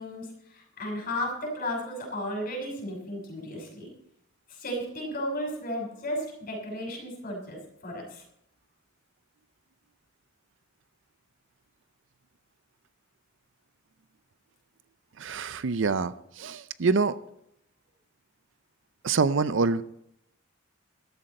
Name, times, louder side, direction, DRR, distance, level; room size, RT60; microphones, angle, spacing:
voice 1, 0.0-3.9 4.5-8.2, equal, 45° left, 0 dB, 5.9 m, -34 dB
voice 2, 15.2-17.1 19.0-19.8, right 4 dB, 65° right, 15 dB, 0.6 m, -26 dB
14.5 x 12.5 x 4.3 m, 0.76 s
head